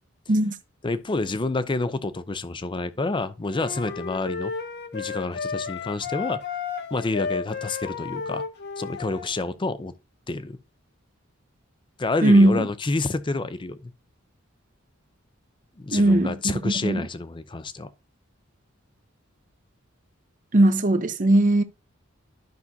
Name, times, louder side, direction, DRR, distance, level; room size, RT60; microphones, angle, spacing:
voice 1, 0.8-4.5 4.9-6.4 6.9-8.4 8.8-9.9 10.3-10.6 12.0-13.9 15.8-17.9, left 3 dB, 25° left, 0.5 m, -28 dB
sound 1, 3.5-9.3, left 5 dB, 55° left, 0.9 m, -33 dB
voice 2, 12.2-12.6 15.9-16.3 16.6-17.0 20.5-21.6, right 1 dB, 40° right, 0.7 m, -18 dB
12.0 x 5.9 x 2.7 m
head